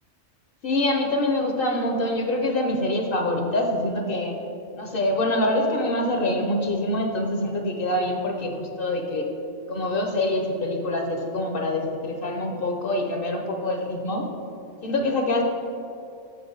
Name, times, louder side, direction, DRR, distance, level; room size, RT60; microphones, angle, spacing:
voice 1, 0.6-4.4 4.8-9.3 9.7-14.3 14.8-15.4, left 1 dB, 50° left, 2 dB, 0.8 m, -25 dB
8.1 x 6.7 x 3.9 m, 2.7 s
omnidirectional pair, 1.4 m